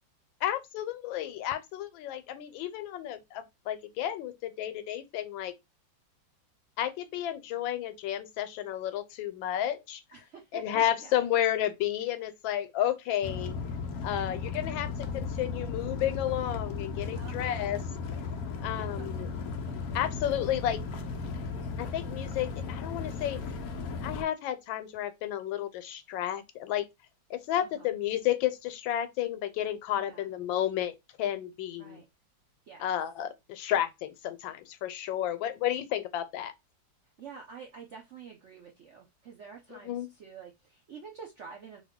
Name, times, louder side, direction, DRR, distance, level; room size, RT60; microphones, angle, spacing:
voice 1, 0.4-5.5 6.8-10.0 10.5-13.6 14.0-17.8 18.6-19.3 19.9-20.8 21.8-23.4 24.0-26.9 27.3-30.9 31.2-32.0 32.8-36.5 39.7-40.1, left 11 dB, 90° left, 1.3 m, -32 dB
voice 2, 10.1-11.2 17.1-17.7 18.7-19.1 19.6-20.0 27.6-27.9 29.9-30.3 31.8-32.0 32.7-33.0 37.2-41.8, right 6 dB, 75° right, 0.6 m, -48 dB
sound 1, 13.2-24.2, left 4 dB, 75° left, 0.8 m, -36 dB
3.0 x 2.3 x 3.5 m
omnidirectional pair, 2.0 m